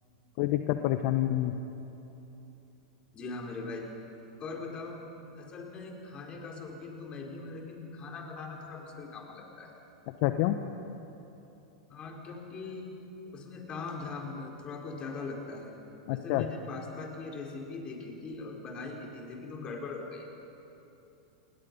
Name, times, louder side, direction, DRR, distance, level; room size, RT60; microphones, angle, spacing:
voice 1, 0.4-1.5 10.2-10.6 16.1-16.4, left 14 dB, 55° left, 8 dB, 1.0 m, -27 dB
voice 2, 3.1-3.9 4.4-9.7 11.9-12.9 13.3-15.7 16.1-20.3, left 3 dB, 30° left, 0 dB, 4.6 m, -41 dB
28.0 x 21.0 x 5.5 m, 3.0 s
hypercardioid pair, 95°, 3 cm